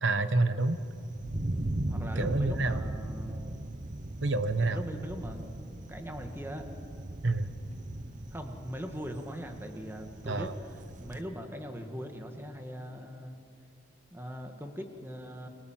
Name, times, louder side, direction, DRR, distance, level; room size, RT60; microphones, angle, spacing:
voice 1, 0.0-0.8 2.2-2.8 4.2-4.8 7.2-7.5 10.2-10.5, right 2 dB, 70° right, 11 dB, 1.3 m, -28 dB
Thunder, 0.6-11.2, right 1 dB, 40° right, 0.9 m, -38 dB
voice 2, 1.9-3.5 4.7-5.6 5.9-6.7 8.3-13.4 14.1-15.5, equal, 10° right, 5 dB, 2.0 m, -41 dB
29.5 x 22.5 x 7.6 m, 2.4 s
head